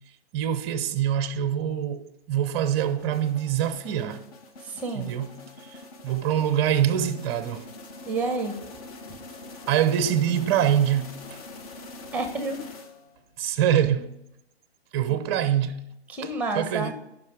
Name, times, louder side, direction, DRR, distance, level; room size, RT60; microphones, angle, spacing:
voice 1, 0.3-4.2 4.9-5.3 5.6-5.8 6.0-7.7 9.7-11.4 13.4-14.1 14.9-15.8 16.5-16.9, right 10 dB, 25° right, 0.6 m, -24 dB
sound 1, 2.6-13.3, left 2 dB, 35° left, 0.9 m, -44 dB
voice 2, 4.6-5.1 8.1-8.6 12.1-12.6 16.1-16.9, right 3 dB, 5° right, 1.0 m, -29 dB
10.5 x 5.3 x 4.8 m
hypercardioid pair, 140°, 32 cm